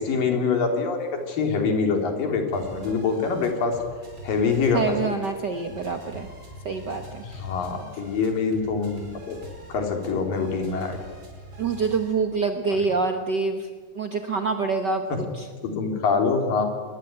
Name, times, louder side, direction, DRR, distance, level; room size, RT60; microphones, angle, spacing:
voice 1, 0.0-3.7 4.2-5.2 7.3-9.4 9.7-11.0 15.1-15.2 15.6-16.7, left 4 dB, 75° left, 4 dB, 4.8 m, -25 dB
sound 1, 2.5-12.1, equal, 30° right, 5.7 m, -44 dB
voice 2, 4.7-6.3 6.6-7.2 11.6-13.7 13.9-15.5, right 4 dB, 70° right, 6 dB, 1.0 m, -26 dB
26.0 x 21.0 x 8.8 m, 1.5 s
omnidirectional pair, 4.0 m